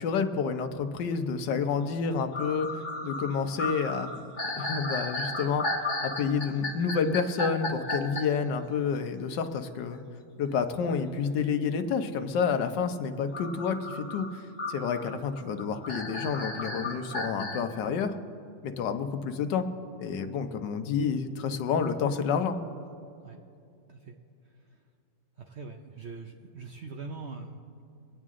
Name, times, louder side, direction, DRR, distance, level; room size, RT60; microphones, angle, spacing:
voice 1, 0.0-2.7 3.0-4.1 4.6-5.7 6.0-10.0 10.4-14.3 14.7-18.1 18.6-19.7 20.0-22.6, left 6 dB, 80° left, 8 dB, 1.5 m, -29 dB
sound 1, 1.9-2.0 2.3-8.2 13.3-17.6, left 2 dB, 30° left, 1.3 m, -34 dB
voice 2, 25.4-27.6, right 4 dB, 60° right, 3 dB, 0.7 m, -42 dB
24.0 x 9.2 x 3.7 m, 2.6 s
omnidirectional pair, 1.9 m